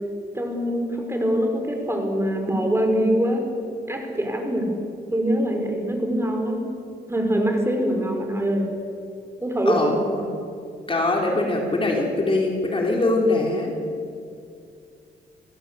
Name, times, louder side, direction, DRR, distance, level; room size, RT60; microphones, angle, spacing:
voice 1, 0.3-3.4 3.9-4.7 5.1-6.6 7.1-8.6 9.4-9.9, equal, 15° right, 2 dB, 4.9 m, -23 dB
voice 2, 9.7-10.3 10.9-13.8, left 2 dB, 30° left, 0 dB, 3.8 m, -22 dB
27.0 x 16.5 x 8.2 m, 2.4 s
cardioid pair, 110°, 19 cm